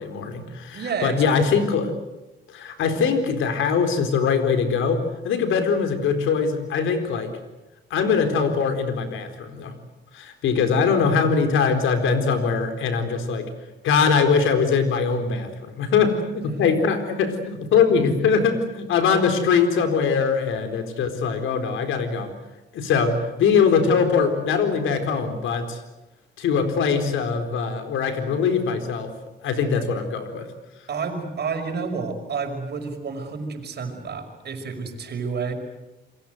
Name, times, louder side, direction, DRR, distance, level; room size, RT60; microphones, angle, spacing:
voice 1, 0.0-1.9 2.5-7.3 7.9-9.8 10.1-13.5 13.8-22.3 22.7-25.8 26.4-29.1 29.4-30.5, left 5 dB, 80° left, 7 dB, 4.3 m, -22 dB
voice 2, 0.7-1.4 30.9-35.5, right 5 dB, 55° right, 4 dB, 5.8 m, -30 dB
28.0 x 23.0 x 8.1 m, 1.0 s
cardioid pair, 90°, 20 cm